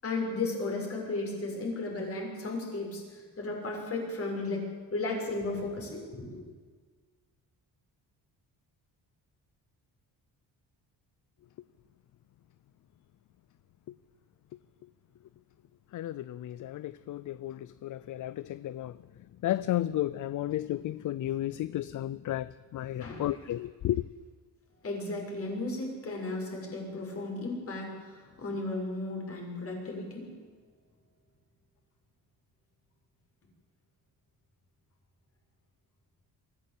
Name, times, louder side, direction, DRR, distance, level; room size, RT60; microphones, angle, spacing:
voice 1, 0.0-4.6 4.9-6.4 23.0-23.4 24.8-30.3, left 2 dB, 35° left, 6.3 m, -35 dB
voice 2, 15.9-18.9 19.4-24.0, left 13 dB, 50° left, 0.5 m, -33 dB
24.0 x 14.5 x 8.5 m
cardioid pair, 160°, 39 cm